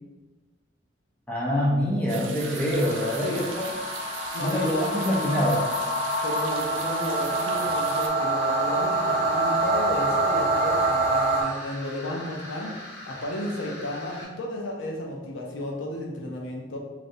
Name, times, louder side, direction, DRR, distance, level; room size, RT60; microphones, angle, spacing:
voice 1, 1.3-3.3 3.6-3.7 4.4-5.7, equal, 10° left, -5 dB, 0.5 m, -25 dB
sound 1, 2.1-8.1, right 6 dB, 90° right, 0.4 m, -39 dB
sound 2, 2.4-14.2, left 1 dB, 60° left, 0.9 m, -41 dB
sound 3, 2.7-11.4, right 2 dB, 35° right, 0.6 m, -26 dB
voice 2, 4.3-5.2 6.2-12.8 13.1-16.8, left 1 dB, 90° left, 0 dB, 0.6 m, -33 dB
3.1 x 2.5 x 2.6 m, 1.2 s
head